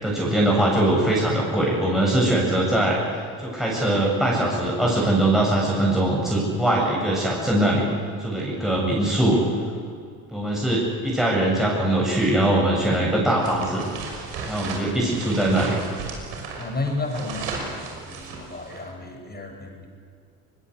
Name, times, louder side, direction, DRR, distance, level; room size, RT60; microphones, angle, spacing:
voice 1, 0.0-7.9 8.2-9.4 10.3-13.9 14.5-15.8, right 1 dB, ahead, -4 dB, 7.6 m, -22 dB
sound 1, 13.4-18.9, right 4 dB, 80° right, 6.2 m, -35 dB
voice 2, 16.6-19.9, left 3 dB, 20° left, 2 dB, 7.5 m, -32 dB
24.0 x 21.5 x 8.2 m, 2.2 s
hypercardioid pair, 70°, 44 cm